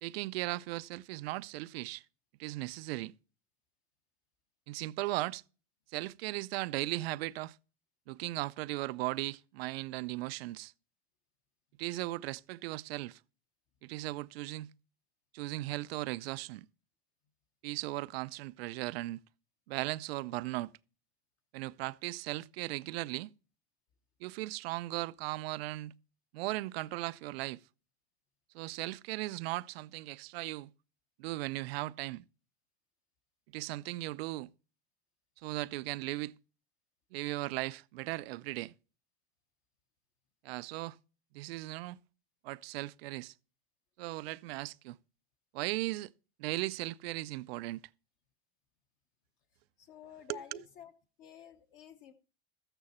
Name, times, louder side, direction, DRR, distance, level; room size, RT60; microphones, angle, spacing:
voice 1, 0.0-2.0 2.4-3.1 4.7-5.4 5.9-7.6 8.1-10.7 11.8-13.2 13.8-14.7 15.3-16.7 17.6-19.2 19.7-20.7 21.5-23.3 24.2-26.0 26.3-27.6 28.5-30.7 31.2-32.3 33.5-34.5 35.4-36.4 37.1-38.7 40.4-41.0 41.3-42.0 42.4-43.3 44.0-45.0 45.5-46.1 46.4-47.8 50.3-50.6, right 19 dB, 85° right, 0.5 m, -37 dB
voice 2, 49.8-50.9 51.2-52.1, left 10 dB, 40° left, 0.8 m, -51 dB
14.0 x 9.0 x 4.2 m
supercardioid pair, 160°, 30 cm